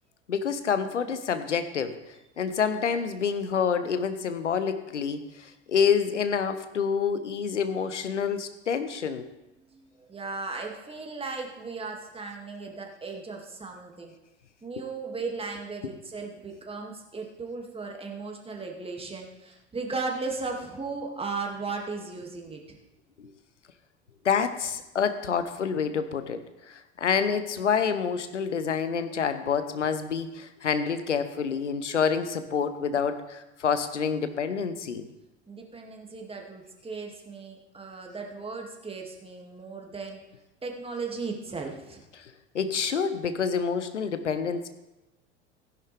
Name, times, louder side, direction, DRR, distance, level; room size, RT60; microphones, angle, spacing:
voice 1, 0.3-2.0 2.4-9.3 15.8-15.9 23.2-23.3 24.2-35.0 42.2-44.7, left 6 dB, 85° left, 10 dB, 0.9 m, -28 dB
voice 2, 9.6-14.1 14.6-22.8 35.5-40.2 40.6-42.1, right 4 dB, 15° right, 1 dB, 2.3 m, -36 dB
15.0 x 11.0 x 3.4 m, 0.98 s
figure-of-eight pair, 70°, 35 cm